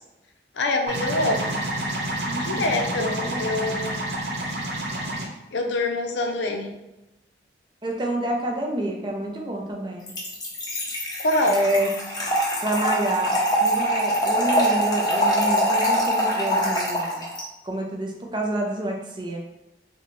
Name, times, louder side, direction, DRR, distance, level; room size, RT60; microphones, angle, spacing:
voice 1, 0.6-1.5 2.4-4.1 5.5-6.7 11.2-11.7, left 2 dB, 80° left, 3 dB, 0.5 m, -25 dB
sound 1, 0.9-5.2, right 1 dB, 65° right, 0.7 m, -29 dB
voice 2, 2.2-3.8 7.8-10.1 11.4-11.9 12.6-13.3 13.6-17.2 17.6-19.4, right 1 dB, 25° right, 1 dB, 0.5 m, -28 dB
Trickle dribble / Fill (with liquid), 10.1-17.4, equal, 20° left, 0.7 m, -23 dB
3.8 x 2.2 x 3.0 m, 0.99 s
head